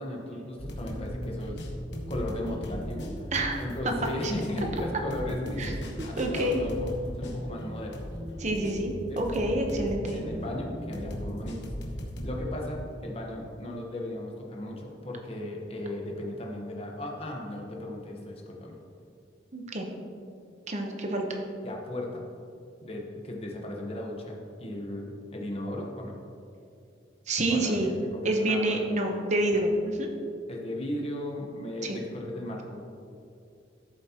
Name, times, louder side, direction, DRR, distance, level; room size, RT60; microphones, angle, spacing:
voice 1, 0.0-1.7 2.1-3.1 3.6-6.9 7.2-8.1 9.1-9.2 9.6-11.6 12.2-18.8 21.6-22.2 22.8-26.2 27.5-28.2 28.5-28.8 30.5-32.8, left 1 dB, 30° left, 0 dB, 1.2 m, -36 dB
sound 1, 0.6-13.1, equal, 65° left, 1.2 m, -37 dB
voice 2, 3.3-3.6 4.2-4.3 5.6-6.6 8.4-10.2 19.5-19.8 20.7-21.3 27.3-27.9 28.2-30.1 31.8-32.0, right 1 dB, 40° right, 2 dB, 1.0 m, -28 dB
13.0 x 7.5 x 3.0 m, 2.5 s
head